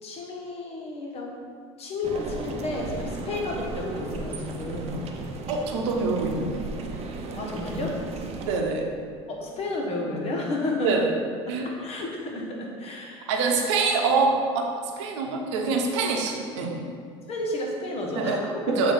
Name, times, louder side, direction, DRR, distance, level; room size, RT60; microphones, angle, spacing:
voice 1, 0.0-1.3 1.8-5.1 7.4-8.0 9.3-11.0 11.6-13.3 13.7-13.9 17.3-18.9, left 2 dB, 45° left, -1 dB, 1.4 m, -31 dB
sound 1, 2.0-8.6, right 3 dB, 45° right, 0.7 m, -35 dB
voice 2, 5.5-6.6 8.5-8.8 10.8-11.1 11.5-11.7 13.3-16.8 18.2-18.4 18.7-18.9, right 4 dB, 80° right, 2 dB, 0.8 m, -25 dB
7.9 x 2.8 x 4.5 m, 2.2 s
hypercardioid pair, 80°, 15 cm